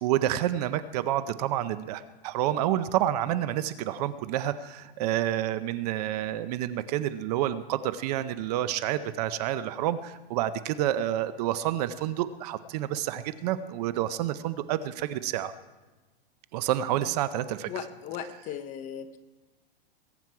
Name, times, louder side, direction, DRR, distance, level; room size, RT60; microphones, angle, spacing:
voice 1, 0.0-15.5 16.5-17.8, right 12 dB, 40° right, 14 dB, 0.6 m, -29 dB
voice 2, 17.7-19.2, left 8 dB, 25° left, 10 dB, 0.8 m, -37 dB
21.0 x 9.1 x 4.7 m, 1.2 s
supercardioid pair, 150°, 30 cm